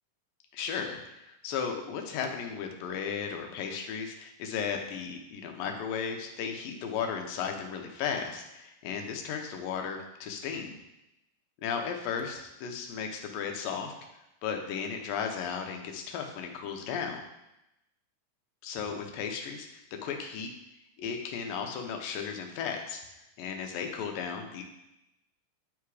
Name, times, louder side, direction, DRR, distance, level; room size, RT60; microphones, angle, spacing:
voice 1, 0.5-10.8 11.6-13.9 14.4-17.2 18.6-20.5 21.0-23.0 23.4-24.6, left 6 dB, 85° left, 3 dB, 2.6 m, -35 dB
10.0 x 3.6 x 4.8 m, 0.89 s
omnidirectional pair, 4.0 m